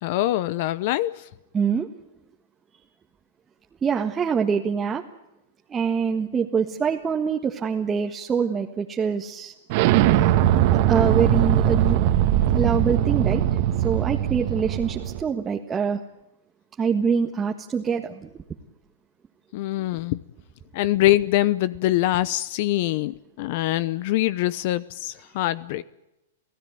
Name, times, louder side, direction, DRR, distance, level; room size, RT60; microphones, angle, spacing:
voice 1, 0.0-1.2 19.5-20.2 20.7-25.8, left 15 dB, 50° left, 18 dB, 0.8 m, -24 dB
voice 2, 1.5-1.9 3.8-5.0 5.7-9.5 10.1-10.3 10.7-12.0 12.5-13.4 13.8-16.0 16.8-18.4, right 6 dB, 20° right, 2 dB, 1.6 m, -25 dB
Explosion, 9.7-15.2, right 11 dB, 50° right, 1.9 m, -20 dB
29.0 x 16.5 x 9.3 m, 0.93 s
hypercardioid pair, 120°, 0 cm